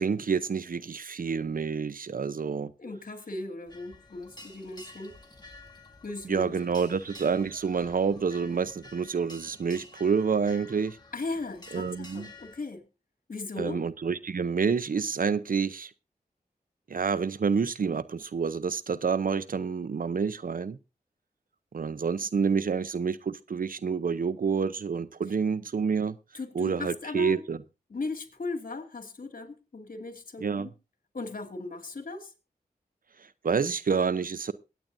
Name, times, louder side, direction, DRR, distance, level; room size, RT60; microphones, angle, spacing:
voice 1, 0.0-2.7 6.3-11.0 11.7-12.3 13.6-15.9 16.9-20.8 21.7-26.2 26.5-27.6 30.4-30.7 33.4-34.5, right 5 dB, 60° right, 0.6 m, -28 dB
voice 2, 2.8-5.2 6.0-6.6 11.1-12.8 13.3-13.8 26.3-27.4 27.9-30.7 31.1-32.3, left 3 dB, 55° left, 2.1 m, -37 dB
sound 1, 3.7-12.6, left 2 dB, 25° left, 2.1 m, -51 dB
22.5 x 8.7 x 2.6 m
cardioid pair, 40°, 17 cm